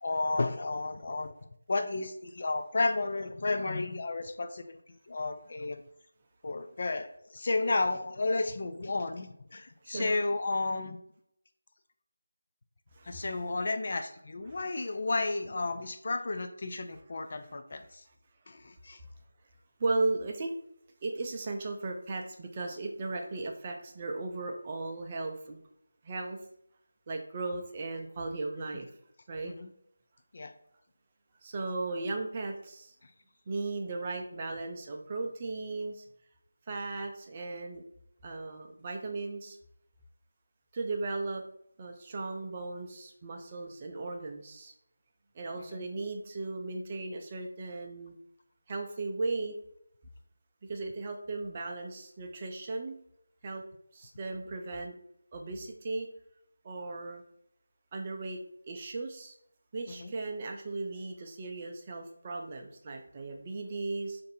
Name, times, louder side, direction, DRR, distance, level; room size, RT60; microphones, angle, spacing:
voice 1, 0.0-1.3 1.7-4.6 5.1-5.8 6.4-11.0 13.1-18.0 18.5-19.0 29.4-29.7 30.3-30.5 33.0-33.1 45.6-45.9 59.9-60.1, left 3 dB, 45° left, 7 dB, 0.3 m, -32 dB
voice 2, 9.8-10.2 12.9-13.3 14.5-14.6 19.8-20.5 21.0-25.6 26.0-26.4 27.1-28.9 29.3-29.5 31.4-32.9 33.5-36.0 36.7-37.8 38.2-39.6 40.7-41.4 41.8-44.7 45.3-48.1 48.7-49.6 50.7-53.0 53.4-53.6 53.9-55.0 55.3-56.1 56.6-57.2 57.9-59.3 59.7-64.2, right 3 dB, 25° right, 2 dB, 0.4 m, -36 dB
2.6 x 2.5 x 4.0 m, 0.72 s
figure-of-eight pair, 165°, 0 cm